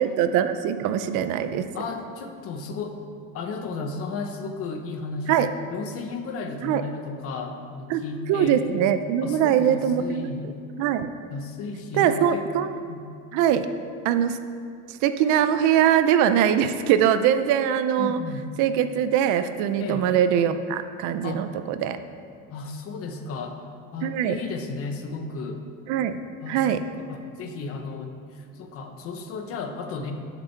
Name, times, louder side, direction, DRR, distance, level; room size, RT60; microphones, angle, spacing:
voice 1, 0.0-1.7 5.3-5.5 6.6-6.8 7.9-8.0 8.3-10.3 10.8-11.1 11.9-12.7 13.3-13.7 14.0-14.4 14.9-18.2 18.6-22.0 24.0-24.4 25.9-26.2 26.5-26.8, right 9 dB, 65° right, 10 dB, 0.6 m, -22 dB
voice 2, 1.7-3.0 3.3-8.6 9.2-10.6 11.3-12.5 12.9-13.0 18.0-18.4 19.8-20.1 21.2-21.4 22.5-23.6 23.9-25.7 26.4-30.1, left 4 dB, 45° left, 5 dB, 1.0 m, -34 dB
16.5 x 6.0 x 4.6 m, 2.3 s
cardioid pair, 175°, 33 cm